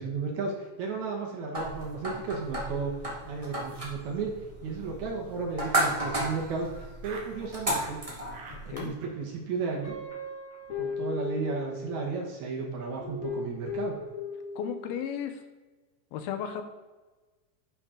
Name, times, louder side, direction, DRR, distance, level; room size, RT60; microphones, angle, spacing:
voice 1, 0.0-2.9 3.3-4.4 4.6-8.0 8.7-10.0 10.8-14.0, right 4 dB, 65° right, 0 dB, 2.2 m, -34 dB
sound 1, 1.5-8.9, right 1 dB, 40° right, 0.4 m, -34 dB
Laughter, 5.5-7.3 7.7-8.0 8.3-8.6 8.9-9.4 9.7-9.8 10.1-10.2 10.5-10.6 10.8-11.0 11.2-11.6, right 4 dB, 85° right, 3.1 m, -49 dB
voice 2, 8.5-8.9 14.6-15.4 16.1-16.6, left 8 dB, 90° left, 8 dB, 2.7 m, -34 dB
Guitar, 9.8-12.3 13.0-14.9, left 3 dB, 55° left, 3.1 m, -36 dB
9.9 x 5.7 x 3.7 m, 1.2 s
omnidirectional pair, 4.2 m